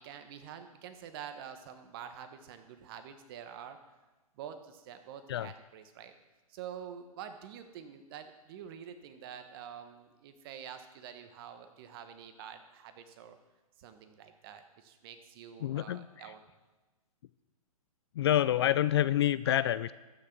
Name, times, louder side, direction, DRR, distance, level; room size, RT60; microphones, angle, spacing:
voice 1, 0.0-3.8 4.4-6.1 6.5-13.4 13.8-16.4, right 8 dB, 40° right, 8 dB, 1.2 m, -47 dB
voice 2, 15.6-16.0 18.2-19.9, left 12 dB, 45° left, 17 dB, 0.4 m, -27 dB
13.5 x 6.4 x 6.0 m, 1.2 s
hypercardioid pair, 135°, 19 cm